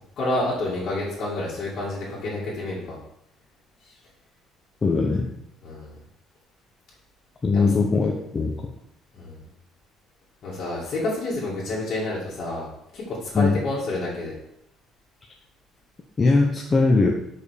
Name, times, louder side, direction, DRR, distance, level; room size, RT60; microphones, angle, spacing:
voice 1, 0.2-3.0 3.8-3.9 5.6-6.0 7.5-7.7 9.1-9.4 10.4-14.3, left 2 dB, 45° left, -8 dB, 1.9 m, -29 dB
voice 2, 4.8-5.3 7.4-8.5 13.3-13.6 16.2-17.1, left 3 dB, 20° left, -1 dB, 0.7 m, -20 dB
5.1 x 5.1 x 4.8 m, 0.78 s
cardioid pair, 150°, 0 cm